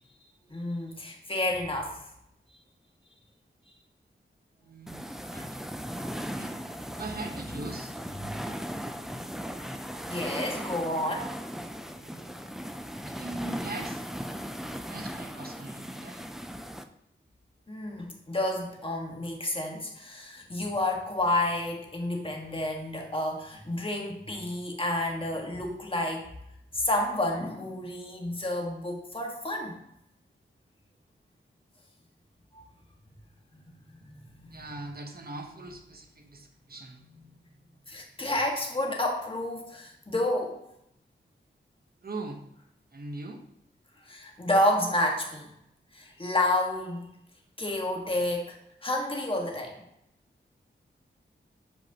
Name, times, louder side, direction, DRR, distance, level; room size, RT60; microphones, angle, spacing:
voice 1, 0.5-1.9 8.2-8.3 10.1-11.3 17.7-26.2 26.7-29.8 34.0-34.6 37.9-40.5 44.1-45.5 45.9-47.1 47.6-48.6 48.8-49.8, left 1 dB, 25° left, 0 dB, 1.6 m, -30 dB
voice 2, 4.6-5.5 6.2-6.5 6.9-7.9 11.7-12.4 13.0-14.0 14.9-16.2 34.5-37.0 42.0-42.4 42.9-43.4, right 2 dB, 50° right, 3 dB, 1.1 m, -41 dB
sound 1, 4.9-16.8, equal, ahead, 0.5 m, -38 dB
7.6 x 5.2 x 2.9 m, 0.80 s
wide cardioid pair, 65°, 20 cm